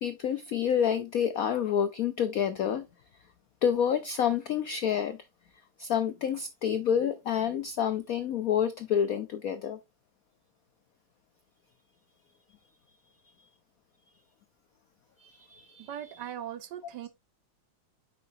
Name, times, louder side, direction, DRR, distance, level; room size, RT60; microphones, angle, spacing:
voice 1, 0.0-2.9 3.6-5.2 5.8-9.8 15.2-15.9, left 8 dB, 80° left, 0.7 m, -28 dB
voice 2, 15.8-17.1, right 10 dB, 70° right, 1.2 m, -39 dB
8.7 x 6.4 x 2.7 m
omnidirectional pair, 2.3 m